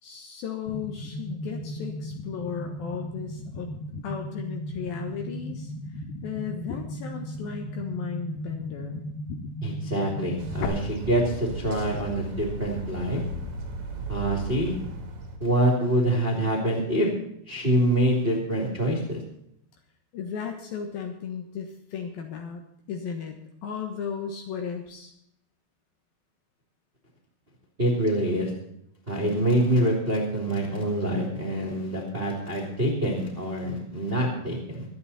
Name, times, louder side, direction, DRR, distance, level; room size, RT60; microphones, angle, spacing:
voice 1, 0.0-3.7 4.0-5.7 6.2-9.0 20.1-22.6 22.9-23.4 23.6-25.1, left 7 dB, 70° left, 3 dB, 3.0 m, -35 dB
sound 1, 0.7-10.7, left 1 dB, 85° left, 3.4 m, -36 dB
voice 2, 9.6-13.2 14.1-14.8 15.4-17.1 17.5-19.2 27.8-28.5 29.1-34.9, right 1 dB, 15° right, -1 dB, 2.6 m, -25 dB
sound 2, 10.4-15.4, right 2 dB, 40° right, 2.8 m, -35 dB
24.0 x 8.8 x 4.2 m, 0.75 s
omnidirectional pair, 4.7 m